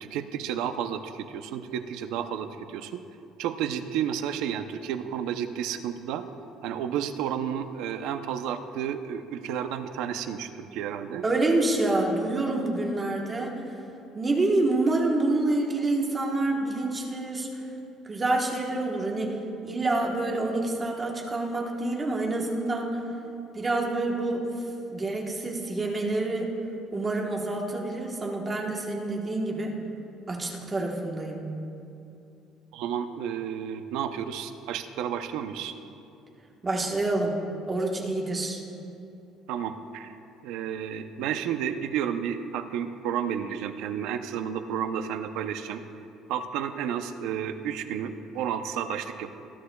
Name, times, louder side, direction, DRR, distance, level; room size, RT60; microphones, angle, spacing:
voice 1, 0.0-2.9 3.4-6.2 6.6-11.2 32.7-35.7 39.5-40.1 40.4-45.8 46.3-49.3, right 8 dB, 70° right, 8 dB, 0.6 m, -31 dB
voice 2, 11.2-13.6 14.1-17.5 18.1-23.0 23.5-24.5 24.9-26.6 26.9-29.7 30.3-31.4 36.6-37.4 37.7-38.6, right 2 dB, 20° right, 0 dB, 1.2 m, -27 dB
20.0 x 11.5 x 2.3 m, 2.7 s
cardioid pair, 170°, 0 cm